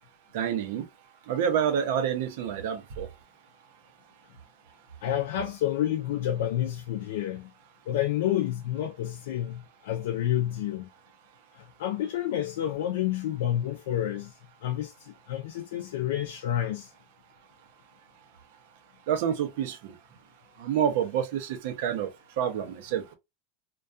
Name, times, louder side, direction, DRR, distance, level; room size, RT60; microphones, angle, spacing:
voice 1, 0.3-0.9 1.3-3.1 19.1-19.9 20.6-22.1 22.4-23.0, right 8 dB, 65° right, 0.6 m, -28 dB
voice 2, 5.0-7.5 7.9-10.9 11.6-14.3 14.6-16.9, left 12 dB, 80° left, 0.4 m, -29 dB
2.3 x 2.2 x 2.5 m
supercardioid pair, 155°, 0 cm